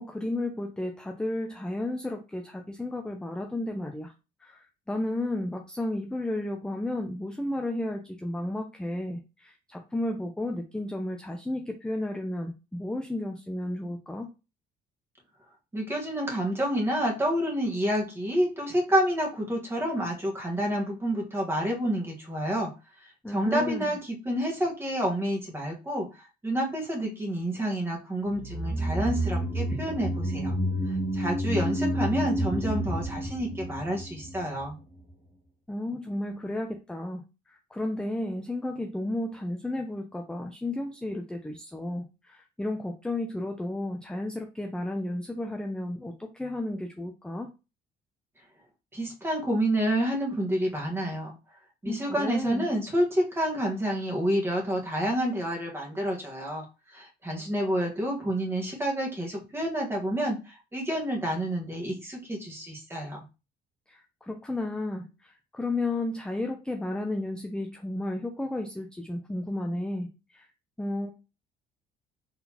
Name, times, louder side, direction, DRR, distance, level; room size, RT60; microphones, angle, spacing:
voice 1, 0.0-4.1 4.4-14.3 23.2-24.0 35.7-47.5 51.8-52.7 63.9-70.5 70.8-71.1, left 1 dB, 5° left, 3 dB, 0.6 m, -33 dB
voice 2, 15.7-22.7 23.3-30.5 31.1-34.8 48.9-51.3 51.8-56.7 56.9-60.4 60.7-63.2, right 1 dB, 15° right, -1 dB, 1.5 m, -29 dB
sound 1, 28.3-34.7 35.0-35.1, right 1 dB, 45° right, 2.3 m, -29 dB
4.0 x 3.8 x 2.9 m, 0.29 s
cardioid pair, 110°, 17 cm